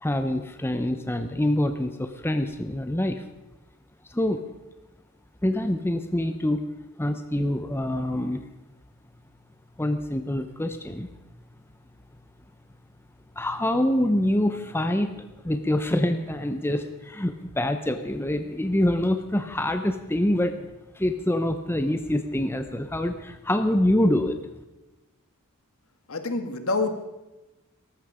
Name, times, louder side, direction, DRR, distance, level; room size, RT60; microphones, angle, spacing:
voice 1, 0.0-3.2 4.1-4.5 5.4-6.7 7.0-8.5 9.8-11.1 13.4-15.1 15.4-20.7 20.9-24.4, left 1 dB, 10° left, 8 dB, 0.7 m, -25 dB
voice 2, 26.1-27.0, left 3 dB, 70° left, 7 dB, 1.7 m, -27 dB
18.0 x 14.0 x 5.0 m, 1.0 s
head